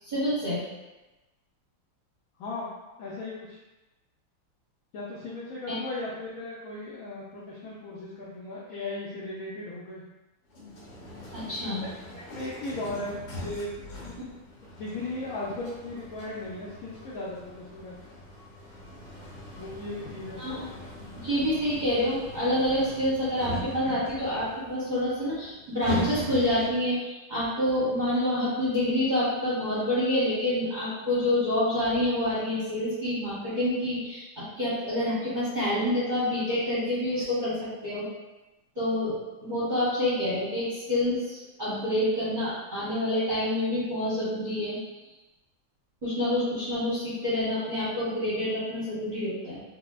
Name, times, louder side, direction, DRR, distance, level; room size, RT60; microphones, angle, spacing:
voice 1, 0.0-0.6 5.7-5.8 11.3-11.8 20.4-20.7 21.1-37.6 37.8-38.1 38.8-44.8 46.0-49.6, left 1 dB, 35° right, -11 dB, 0.7 m, -27 dB
voice 2, 2.4-2.7 3.0-3.6 4.9-10.0 11.6-14.1 14.6-18.0 19.5-20.4, left 2 dB, 85° left, -7 dB, 0.7 m, -37 dB
sound 1, 10.5-26.9, left 1 dB, 70° left, 1.6 m, -40 dB
4.1 x 2.2 x 2.3 m, 1.1 s
omnidirectional pair, 2.1 m